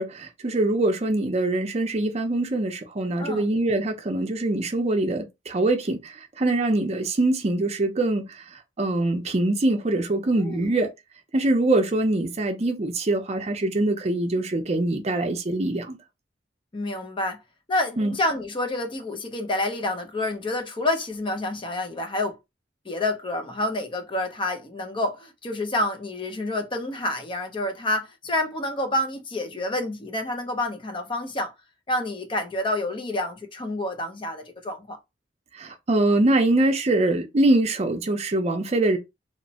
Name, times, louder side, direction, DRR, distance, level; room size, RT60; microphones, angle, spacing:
voice 1, 0.0-10.9 11.3-16.0 18.0-18.2 35.5-39.0, right 2 dB, 35° right, 0.5 m, -23 dB
voice 2, 10.4-10.8 16.7-17.4 17.7-22.4 22.9-31.5 31.9-35.0, left 1 dB, 30° left, 0.5 m, -28 dB
3.0 x 2.1 x 2.6 m
head